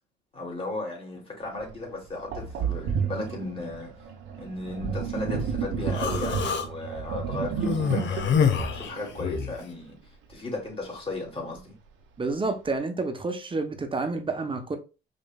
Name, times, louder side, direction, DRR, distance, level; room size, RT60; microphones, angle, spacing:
voice 1, 0.3-3.9 4.4-10.0 10.3-11.8, left 2 dB, 30° left, 2.4 m, -36 dB
Sink (filling or washing), 1.6-1.7 2.3-9.6, right 6 dB, 90° right, 1.1 m, -31 dB
Human voice, 5.9-6.7 7.6-9.6, left 7 dB, 70° left, 0.8 m, -26 dB
voice 2, 12.2-14.8, right 3 dB, 25° right, 0.9 m, -29 dB
5.1 x 3.1 x 2.3 m
cardioid pair, 90°, 20 cm